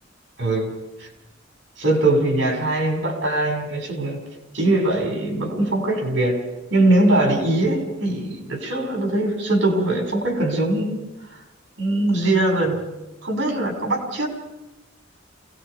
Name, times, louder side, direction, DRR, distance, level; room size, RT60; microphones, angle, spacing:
voice 1, 0.4-0.7 1.8-4.2 4.5-6.4 6.7-11.0 11.8-12.8 13.2-14.3, right 2 dB, 70° right, 2 dB, 6.0 m, -21 dB
29.5 x 18.5 x 5.1 m, 0.97 s
head